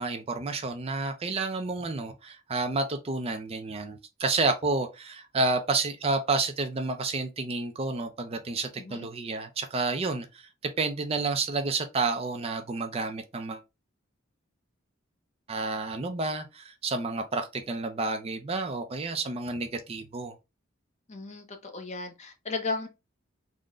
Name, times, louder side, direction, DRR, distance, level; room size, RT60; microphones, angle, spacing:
voice 1, 0.0-13.6 15.5-20.3, right 3 dB, 30° right, 0.4 m, -30 dB
voice 2, 8.8-9.1 21.1-22.9, left 4 dB, 35° left, 0.7 m, -35 dB
3.7 x 2.1 x 3.5 m
head